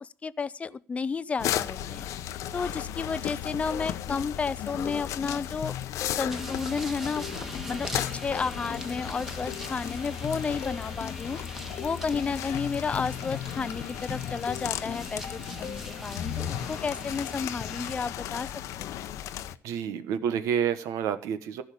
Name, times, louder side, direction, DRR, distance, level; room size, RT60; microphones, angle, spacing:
voice 1, 0.0-2.1 2.5-5.7 6.1-7.3 7.7-11.4 11.8-18.5 18.8-19.0, left 5 dB, 25° left, 0.5 m, -32 dB
sound 1, 1.4-19.6, left 11 dB, 75° left, 0.8 m, -35 dB
sound 2, 3.7-16.0, left 9 dB, 50° left, 1.3 m, -40 dB
sound 3, 6.3-17.9, equal, 5° right, 1.5 m, -42 dB
voice 2, 19.6-21.6, right 8 dB, 90° right, 1.3 m, -29 dB
15.0 x 5.8 x 8.6 m
cardioid pair, 140°, 5 cm